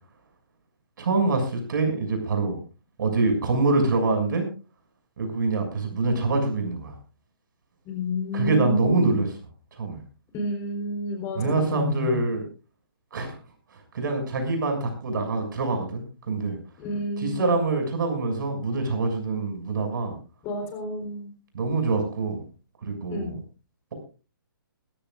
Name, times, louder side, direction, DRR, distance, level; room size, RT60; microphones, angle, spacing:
voice 1, 1.0-2.6 3.0-4.5 5.2-6.9 8.3-9.3 9.8-10.0 11.3-12.4 13.1-13.3 13.9-16.6 17.2-20.2 21.5-22.4 22.8-23.3, right 3 dB, 60° right, 5 dB, 6.6 m, -25 dB
voice 2, 7.8-9.2 10.3-12.2 16.8-17.6 20.4-21.3 23.1-23.4, equal, 25° left, 4 dB, 4.0 m, -30 dB
21.0 x 15.0 x 2.5 m, 0.34 s
hypercardioid pair, 145°, 12 cm